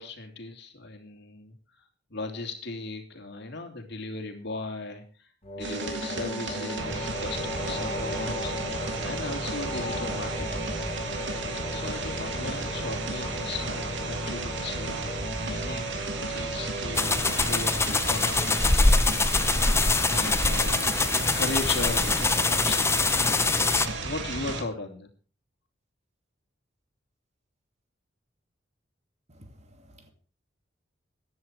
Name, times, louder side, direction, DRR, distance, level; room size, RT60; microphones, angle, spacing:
voice 1, 0.0-1.5 2.1-5.3 5.5-8.7 9.0-10.6 11.7-15.9 16.3-19.7 20.1-25.1, left 3 dB, 60° left, 3.1 m, -37 dB
sound 1, 5.4-17.7, equal, 35° left, 5.5 m, -36 dB
sound 2, 5.6-24.6, right 2 dB, 65° right, 3.1 m, -33 dB
sound 3, 16.9-23.9, left 3 dB, 15° left, 0.7 m, -24 dB
voice 2, 29.3-30.1, equal, 35° right, 2.5 m, -53 dB
15.5 x 10.5 x 4.6 m
head